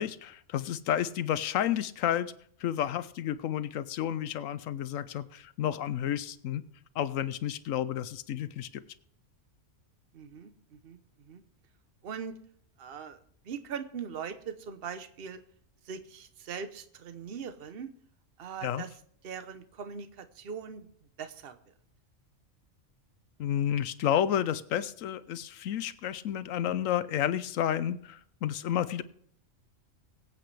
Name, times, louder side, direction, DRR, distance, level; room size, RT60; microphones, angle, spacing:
voice 1, 0.0-2.3 2.6-6.6 7.0-8.8 18.6-18.8 23.4-29.0, left 10 dB, 85° left, 14 dB, 1.0 m, -31 dB
voice 2, 10.1-11.4 12.0-12.4 12.8-13.2 13.4-15.4 15.8-17.9 18.4-18.9 19.2-20.9 21.2-21.7, right 7 dB, 50° right, 9 dB, 1.1 m, -41 dB
23.0 x 8.4 x 3.3 m, 0.64 s
omnidirectional pair, 1.3 m